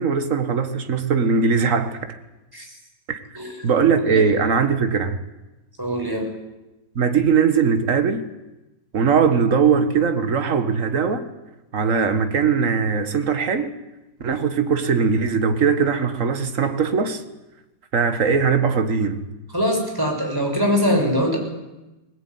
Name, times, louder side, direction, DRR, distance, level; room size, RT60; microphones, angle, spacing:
voice 1, 0.0-2.2 3.1-3.2 3.6-5.2 7.0-8.2 8.9-11.3 11.7-13.7 14.2-17.2 17.9-19.3, right 5 dB, 45° right, 2.0 m, -20 dB
voice 2, 5.8-6.3 19.5-21.4, equal, 10° right, 6.5 m, -22 dB
20.5 x 20.0 x 9.5 m
omnidirectional pair, 1.9 m